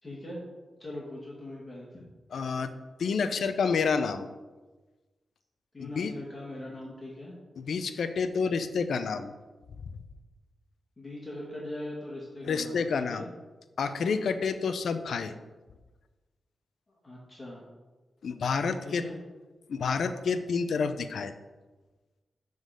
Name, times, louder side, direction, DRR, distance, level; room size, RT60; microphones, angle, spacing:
voice 1, 0.0-0.4 0.8-2.1 5.7-7.3 11.0-13.3 17.0-17.7 18.8-19.2, left 1 dB, 30° left, -4 dB, 2.0 m, -41 dB
voice 2, 2.3-2.7 3.0-4.3 5.9-6.1 7.6-9.3 12.4-13.2 13.8-15.3 18.2-19.1 19.7-21.3, left 5 dB, 75° left, 10 dB, 0.5 m, -29 dB
7.2 x 3.9 x 6.5 m, 1.2 s
cardioid pair, 65°, 0 cm